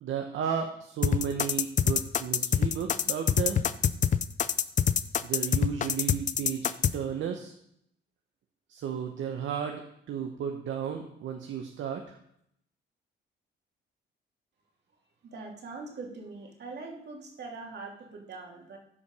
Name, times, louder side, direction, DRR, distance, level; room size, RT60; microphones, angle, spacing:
voice 1, 0.0-3.6 5.2-7.5 8.7-9.8 10.1-12.2, right 7 dB, 75° right, 4 dB, 1.1 m, -33 dB
sound 1, 1.0-6.9, left 8 dB, 40° left, 0.5 m, -25 dB
voice 2, 15.2-18.8, right 3 dB, 60° right, 1 dB, 2.8 m, -42 dB
13.5 x 5.2 x 5.5 m, 0.73 s
cardioid pair, 90°, 20 cm